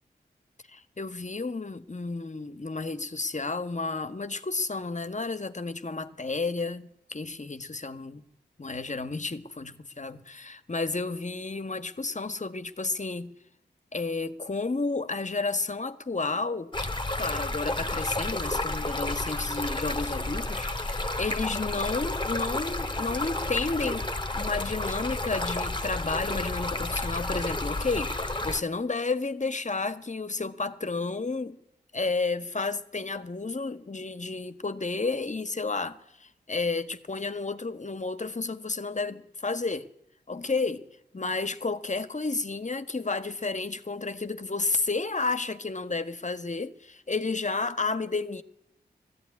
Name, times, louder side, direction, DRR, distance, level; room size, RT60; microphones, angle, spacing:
voice 1, 0.7-8.2 8.6-13.3 13.9-16.7 17.1-31.6 31.9-39.9 40.3-40.9 41.1-48.4, left 3 dB, 45° left, 1.6 m, -31 dB
Stream, 16.7-28.6, left 2 dB, 25° left, 2.1 m, -31 dB
20.0 x 15.5 x 9.8 m
cardioid pair, 40°, 18 cm